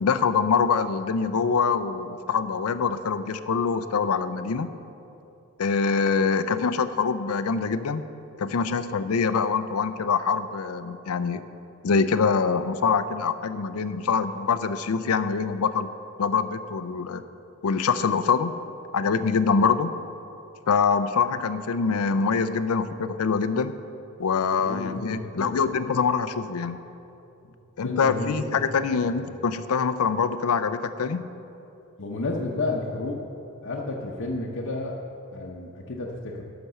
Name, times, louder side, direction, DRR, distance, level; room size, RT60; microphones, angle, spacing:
voice 1, 0.0-4.7 5.6-8.0 8.4-11.4 11.8-15.9 16.2-17.2 17.6-18.5 18.9-19.9 20.7-23.7 24.2-26.8 27.8-31.2, left 5 dB, 80° left, 12 dB, 0.5 m, -24 dB
voice 2, 24.6-25.6 27.4-27.5 27.8-28.6 28.9-29.0 32.0-33.2 33.6-34.9 35.3-36.4, left 2 dB, 60° left, -3 dB, 0.8 m, -31 dB
11.5 x 6.0 x 6.7 m, 2.9 s
head